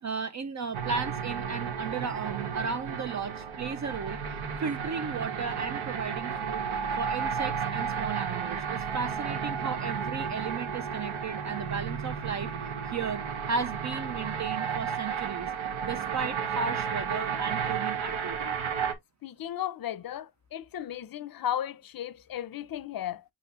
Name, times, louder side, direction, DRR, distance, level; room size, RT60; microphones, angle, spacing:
voice 1, 0.0-4.2 4.6-6.7 7.0-12.5 12.9-15.5 15.8-18.6, right 5 dB, 40° right, 0.4 m, -35 dB
sound 1, 0.7-18.9, right 7 dB, 70° right, 1.2 m, -33 dB
voice 2, 19.2-23.2, left 11 dB, 45° left, 0.6 m, -35 dB
7.5 x 3.0 x 2.3 m
cardioid pair, 100°, 49 cm